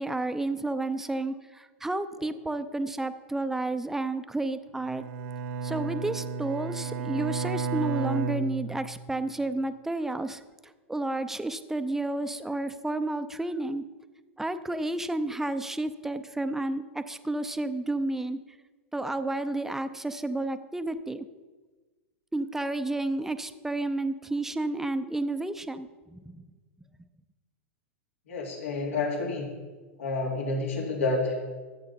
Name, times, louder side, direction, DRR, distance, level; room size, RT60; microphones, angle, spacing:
voice 1, 0.0-5.0 5.6-10.4 10.9-13.8 14.4-18.4 18.9-21.3 22.3-26.4, right 2 dB, 5° right, 11 dB, 0.6 m, -31 dB
Bowed string instrument, 4.8-9.2, right 5 dB, 70° right, 1.2 m, -32 dB
voice 2, 28.3-29.5 30.0-31.3, left 3 dB, 80° left, -1 dB, 2.8 m, -29 dB
13.5 x 7.7 x 4.2 m, 1.3 s
hypercardioid pair, 115°, 7 cm